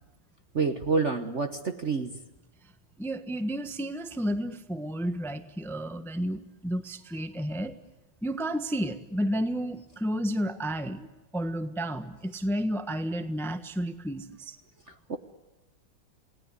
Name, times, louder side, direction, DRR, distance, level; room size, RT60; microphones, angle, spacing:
voice 1, 0.5-2.2 15.1-15.2, right 4 dB, 45° right, 8 dB, 1.2 m, -28 dB
voice 2, 3.0-7.7 8.2-11.1 11.3-14.6, equal, ahead, 9 dB, 1.0 m, -31 dB
29.0 x 19.0 x 9.6 m, 1.1 s
omnidirectional pair, 2.3 m